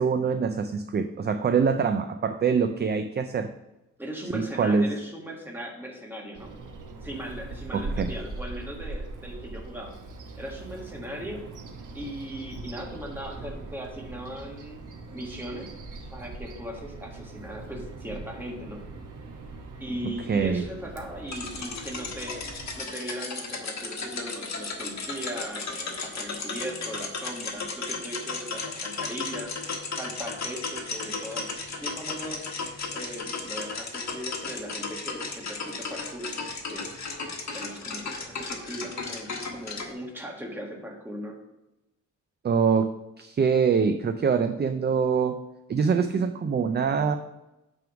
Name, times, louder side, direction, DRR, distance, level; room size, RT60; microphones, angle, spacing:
voice 1, 0.0-3.5 4.3-4.9 7.7-8.1 20.3-20.6 42.4-45.4 45.7-47.2, right 6 dB, 35° right, 8 dB, 0.4 m, -24 dB
voice 2, 4.0-6.5 7.0-9.9 10.4-11.4 11.9-15.7 16.1-18.8 19.8-22.4 22.7-29.5 29.9-31.5 31.8-32.4 32.9-36.3 36.7-36.8 37.5-41.4, equal, 5° right, -1 dB, 1.6 m, -38 dB
Bird vocalization bird call bird song, 6.3-22.8, right 3 dB, 90° right, 1.1 m, -41 dB
sound 1, 21.3-39.9, left 4 dB, 65° left, 1.4 m, -35 dB
9.2 x 3.6 x 5.8 m, 0.95 s
wide cardioid pair, 150°, 30 cm